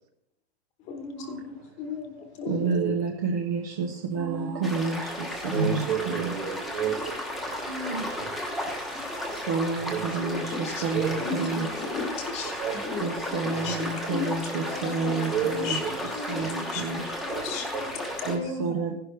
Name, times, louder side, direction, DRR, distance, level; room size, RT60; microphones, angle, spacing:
voice 1, 0.8-2.7 5.5-5.7 9.2-9.4 10.5-10.8 11.2-11.3 11.8-14.3 14.7-16.4 16.7-16.8 17.3-18.5, left 4 dB, 20° left, 5 dB, 1.1 m, -35 dB
voice 2, 2.5-6.4 7.7-8.1 8.7-11.7 13.0-15.8 16.3-17.2 18.2-18.9, right 4 dB, 20° right, 3 dB, 0.4 m, -30 dB
sound 1, 4.6-18.4, left 1 dB, ahead, 1.0 m, -34 dB
voice 3, 5.5-7.6 8.2-8.3 9.9-10.0 10.9-11.1 11.3-11.4 12.4-12.7 15.3-15.9 16.4-16.5 17.3-17.5 17.7-18.0, right 9 dB, 50° right, 4 dB, 2.1 m, -31 dB
16.0 x 11.0 x 3.3 m, 0.76 s
supercardioid pair, 180°, 34 cm